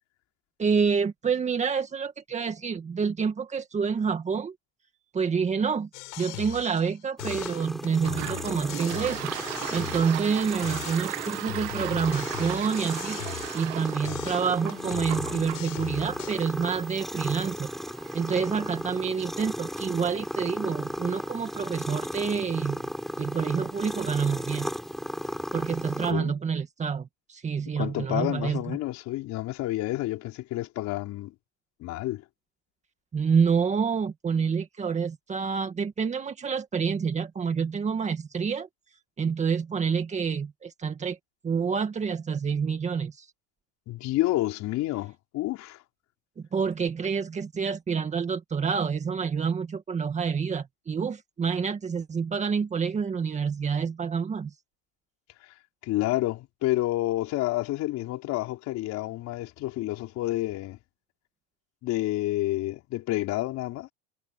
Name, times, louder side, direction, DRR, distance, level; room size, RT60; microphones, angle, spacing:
voice 1, 0.6-4.5 5.1-5.9 6.2-9.3 9.7-13.2 13.5-17.7 18.1-22.9 23.2-24.7 25.5-28.8 33.1-38.7 39.2-41.2 41.4-43.3 46.5-54.5, right 6 dB, 15° right, 2.0 m, -28 dB
sound 1, 5.9-6.9 7.2-10.4 10.6-13.8 14.0-16.4, left 29 dB, 65° left, 5.0 m, -40 dB
sound 2, 7.2-26.1, equal, ahead, 7.8 m, -35 dB
Toilet flush, 8.0-21.3, right 22 dB, 70° right, 2.0 m, -39 dB
voice 2, 27.8-31.3 31.8-32.2 43.9-45.8 55.8-60.8 61.8-63.9, left 16 dB, 45° left, 4.9 m, -29 dB
supercardioid pair, 145°, 39 cm